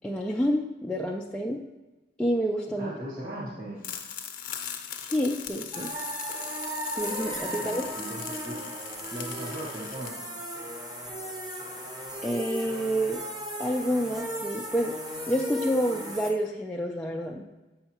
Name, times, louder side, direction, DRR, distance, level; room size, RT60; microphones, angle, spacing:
voice 1, 0.0-1.6 2.2-2.9 4.9-5.9 7.0-7.8 12.2-13.2 13.6-15.0 15.3-17.4, equal, 5° left, -2 dB, 0.3 m, -28 dB
voice 2, 2.8-3.8 7.5-8.6 9.1-10.3, equal, 50° right, -6 dB, 1.6 m, -38 dB
sound 1, 3.8-10.1, left 8 dB, 50° left, 0.6 m, -40 dB
sound 2, 5.7-16.3, equal, 20° right, 0.8 m, -36 dB
7.8 x 5.6 x 2.9 m, 1.1 s
head